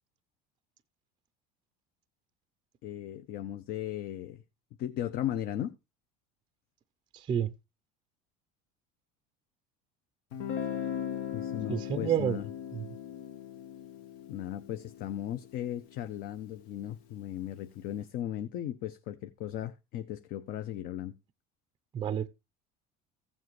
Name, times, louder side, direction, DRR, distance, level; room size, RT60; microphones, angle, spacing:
voice 1, 2.8-4.4 4.8-5.7 11.3-12.5 14.3-21.1, left 11 dB, 50° left, 0.6 m, -37 dB
voice 2, 7.1-7.5 11.7-12.4 12.7-12.9 21.9-22.3, right 9 dB, 25° right, 0.5 m, -29 dB
Guitar, 10.3-16.1, left 9 dB, 80° left, 1.4 m, -39 dB
15.0 x 7.3 x 3.1 m
cardioid pair, 145°, 19 cm